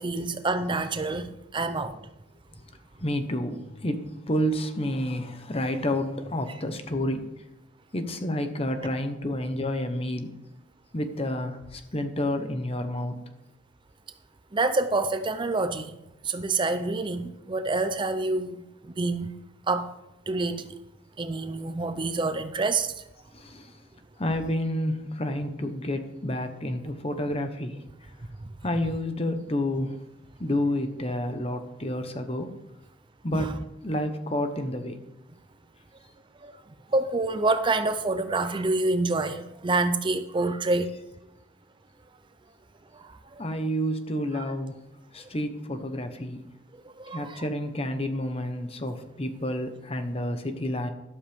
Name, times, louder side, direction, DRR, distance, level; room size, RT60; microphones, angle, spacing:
voice 1, 0.0-2.0 14.5-16.0 16.2-19.3 19.7-19.9 20.3-20.7 21.2-22.9 33.3-33.6 36.4-36.5 36.9-40.9 42.9-43.4 44.3-44.4 46.7-47.4, right 3 dB, 25° right, 10 dB, 0.5 m, -27 dB
voice 2, 3.0-7.3 7.9-10.3 10.9-13.2 23.3-23.8 24.2-28.1 28.6-30.0 30.4-32.5 33.2-33.5 33.8-35.0 43.4-44.8 45.1-46.4 47.1-50.9, left 1 dB, 30° left, 8 dB, 1.1 m, -29 dB
12.5 x 12.0 x 3.6 m, 0.90 s
head